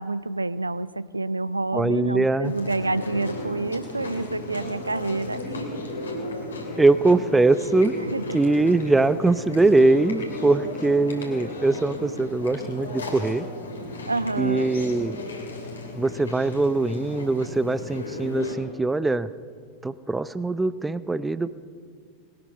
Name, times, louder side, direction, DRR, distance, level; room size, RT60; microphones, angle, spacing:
voice 1, 0.0-5.6 8.1-8.6 14.1-14.7, right 2 dB, 80° right, 17 dB, 0.3 m, -28 dB
voice 2, 1.7-2.5 6.8-7.9 8.3-13.5 14.4-15.2 16.0-19.3 19.8-21.5, right 2 dB, 10° right, 16 dB, 0.5 m, -22 dB
Chewing mastication, 2.4-18.5, left 2 dB, 75° left, 2.9 m, -35 dB
20.0 x 12.5 x 5.6 m, 2.1 s
figure-of-eight pair, 90°, 0 cm